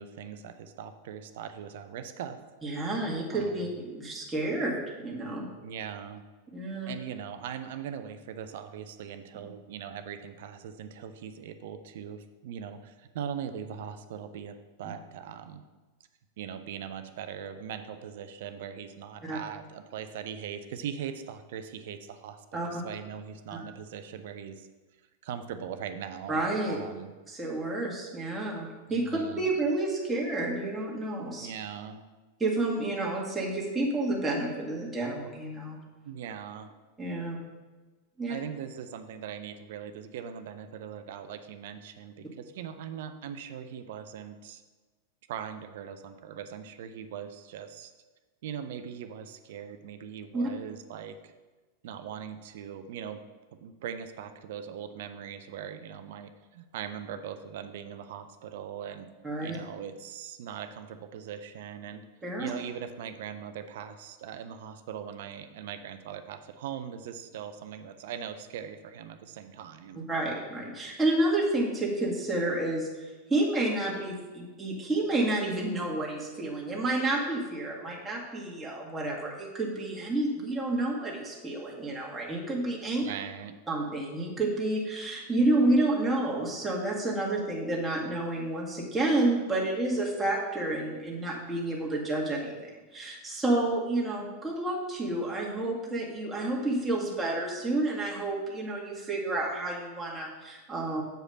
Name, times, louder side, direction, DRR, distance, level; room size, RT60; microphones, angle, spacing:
voice 1, 0.0-2.4 3.3-3.7 5.6-6.2 6.7-15.6 16.4-24.7 25.2-26.4 26.7-27.1 28.9-29.4 31.4-32.0 36.0-36.7 38.3-44.6 45.3-47.9 48.4-51.3 51.8-53.2 53.6-59.1 59.4-62.0 62.4-70.0 83.0-83.6, right 8 dB, 55° right, 9 dB, 0.6 m, -40 dB
voice 2, 2.6-5.4 6.5-6.9 19.2-19.4 22.5-22.7 26.3-26.8 27.3-31.5 32.4-35.8 37.0-37.4 38.2-38.4 50.3-50.5 59.2-59.6 62.2-62.5 69.9-83.0 83.7-101.0, right 2 dB, 10° right, -3 dB, 1.8 m, -30 dB
7.8 x 4.9 x 5.5 m, 1.3 s
figure-of-eight pair, 90°, 0 cm